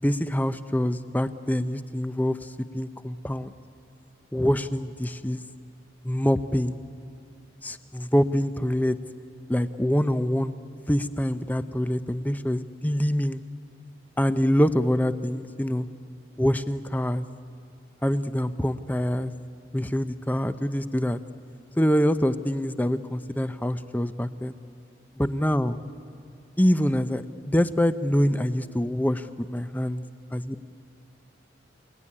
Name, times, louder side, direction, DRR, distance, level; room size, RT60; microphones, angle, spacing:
voice 1, 0.0-2.4 2.7-3.5 4.3-5.4 6.0-6.8 7.6-9.0 9.5-10.5 10.9-13.4 14.2-15.9 16.4-17.2 18.0-19.3 19.7-21.2 21.8-24.6 25.2-25.8 26.6-30.0 30.3-30.6, equal, 10° left, 11 dB, 0.6 m, -25 dB
29.5 x 18.0 x 9.9 m, 2.5 s
head